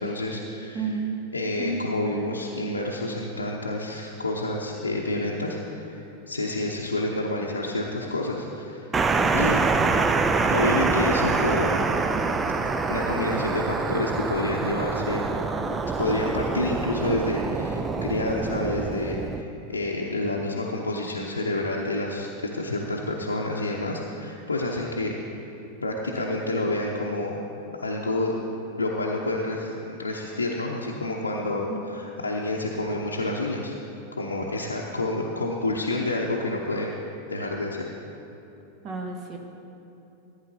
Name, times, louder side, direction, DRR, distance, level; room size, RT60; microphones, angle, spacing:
voice 1, 0.0-0.8 1.3-8.8 9.3-9.6 10.5-11.9 12.9-15.3 16.0-25.2 25.8-27.4 27.8-28.3 28.8-33.7 34.2-36.9 37.3-37.8, left 2 dB, 75° left, -3 dB, 0.7 m, -28 dB
voice 2, 0.7-1.1 1.6-1.9 9.1-9.4 31.7-31.8 38.8-39.4, right 4 dB, 35° right, 2 dB, 1.3 m, -31 dB
sound 1, 8.9-19.4, right 4 dB, 15° right, 0.4 m, -25 dB
14.5 x 9.0 x 2.7 m, 2.9 s
figure-of-eight pair, 90°, 0 cm